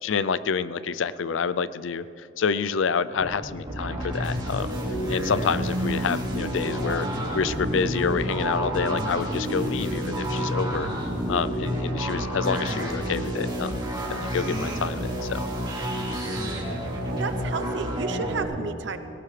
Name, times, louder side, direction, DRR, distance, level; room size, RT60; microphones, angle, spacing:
voice 1, 0.0-4.7 5.1-7.1 7.3-10.9 11.3-13.8 14.1-15.4, left 6 dB, 70° left, 16 dB, 0.4 m, -28 dB
sound 1, 3.2-12.4, left 1 dB, 30° left, 1.0 m, -39 dB
sound 2, 3.7-18.4, equal, 25° right, 3.0 m, -29 dB
voice 2, 17.1-19.0, right 4 dB, 65° right, 9 dB, 0.9 m, -32 dB
18.5 x 18.0 x 3.3 m, 2.7 s
head